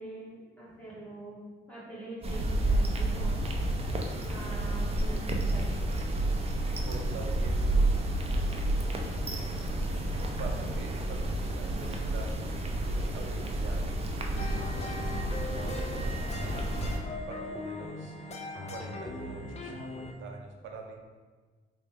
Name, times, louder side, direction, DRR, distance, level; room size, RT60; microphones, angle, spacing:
voice 1, 0.0-1.4 1.7-3.4 4.3-5.8, right 1 dB, 5° left, -8 dB, 1.5 m, -44 dB
sound 1, 2.2-17.0, right 1 dB, 30° right, 0.5 m, -30 dB
voice 2, 6.5-7.8 8.4-9.6 10.1-12.4 12.9-13.9 14.3-16.8 17.3-18.2 18.7-21.0, right 3 dB, 75° right, 2 dB, 0.6 m, -45 dB
sound 2, 14.4-20.1, left 2 dB, 35° left, 0.5 m, -39 dB
3.2 x 2.3 x 3.3 m, 1.4 s
cardioid pair, 90°, 20 cm